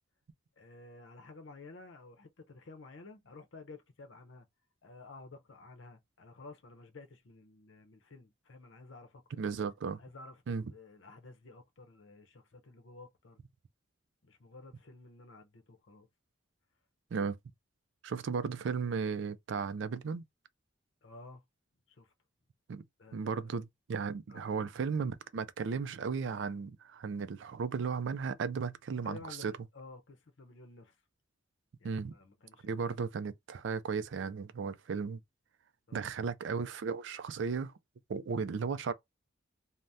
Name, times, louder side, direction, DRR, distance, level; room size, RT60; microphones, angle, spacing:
voice 1, 0.6-4.5 4.8-9.2 10.0-10.4 10.7-13.4 14.2-16.1 21.0-21.4 21.9-22.1 23.0-23.6 24.3-24.7 29.0-31.0 31.8-32.8 35.9-36.1, left 3 dB, 70° left, 0.7 m, -52 dB
voice 2, 9.4-10.0 10.5-10.6 17.1-17.4 18.0-20.2 22.7-22.8 23.1-29.5 31.8-32.1 32.6-35.2 35.9-37.7 38.1-38.9, right 5 dB, 65° right, 0.3 m, -35 dB
2.7 x 2.1 x 3.3 m
head